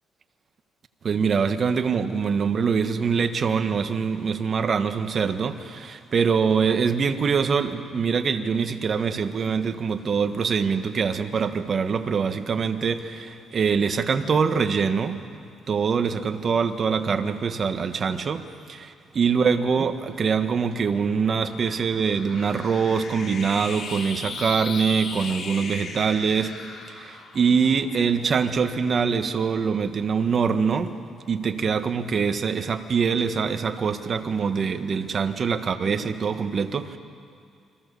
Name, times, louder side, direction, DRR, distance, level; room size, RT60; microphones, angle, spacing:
voice 1, 1.0-15.2 15.7-26.6 26.9-31.0 31.3-37.0, right 6 dB, 45° right, 1.6 m, -24 dB
sound 1, 20.6-28.9, left 4 dB, 60° left, 3.2 m, -38 dB
29.5 x 24.0 x 7.0 m
cardioid pair, 90°, 0 cm